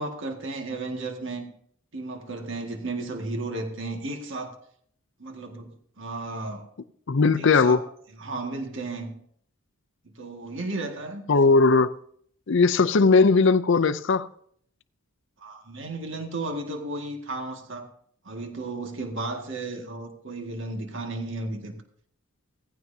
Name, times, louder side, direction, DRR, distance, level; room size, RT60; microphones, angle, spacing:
voice 1, 0.0-1.5 1.9-4.6 5.2-5.7 6.0-6.7 7.4-7.8 8.2-9.1 10.0-11.6 15.4-17.9 18.2-21.7, right 2 dB, 55° right, 1.9 m, -34 dB
voice 2, 7.1-7.8 11.3-11.9 12.5-14.3, left 4 dB, 55° left, 0.5 m, -18 dB
17.0 x 15.5 x 2.8 m
head